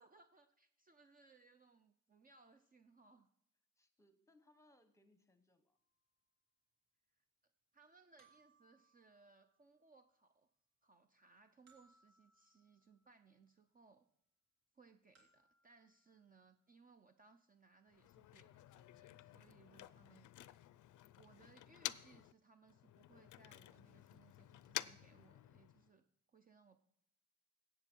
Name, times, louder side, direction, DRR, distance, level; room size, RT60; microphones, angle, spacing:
voice 1, 0.0-3.3 7.2-7.3 7.7-10.5 10.8-14.1 14.7-20.3 21.2-26.8, right 4 dB, 30° right, 8 dB, 0.5 m, -67 dB
voice 2, 3.8-5.8 20.0-20.3, left 1 dB, 10° left, 9 dB, 1.0 m, -71 dB
sound 1, 5.8-5.9 8.2-10.1 11.7-13.3 15.2-16.6, right 4 dB, 60° right, 2.7 m, -74 dB
Motor vehicle (road), 17.9-22.3 22.6-25.9, left 15 dB, 85° left, 0.4 m, -51 dB
16.5 x 7.7 x 4.5 m, 0.71 s
cardioid pair, 125°, 30 cm